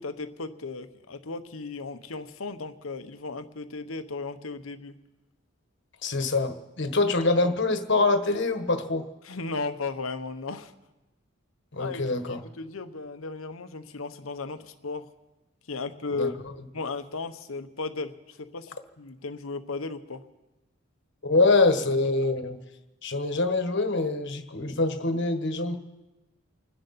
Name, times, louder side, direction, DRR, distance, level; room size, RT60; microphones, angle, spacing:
voice 1, 0.0-5.0 9.2-10.7 11.8-15.1 15.7-16.3 16.7-20.2, left 3 dB, 85° left, 9 dB, 1.0 m, -35 dB
voice 2, 6.0-9.1 11.7-12.4 16.1-16.3 21.2-22.6 23.0-25.8, left 3 dB, 60° left, 7 dB, 1.3 m, -24 dB
29.5 x 10.5 x 4.2 m, 1.0 s
head